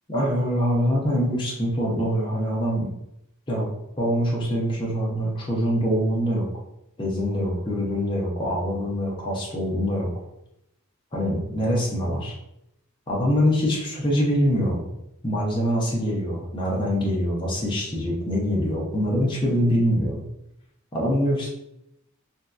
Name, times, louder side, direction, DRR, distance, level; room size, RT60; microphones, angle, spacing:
voice 1, 0.1-2.9 3.5-6.5 7.0-10.1 11.1-12.3 13.1-14.9 15.2-20.2 20.9-21.5, equal, 20° left, -5 dB, 0.7 m, -24 dB
3.1 x 2.6 x 2.4 m, 0.83 s
head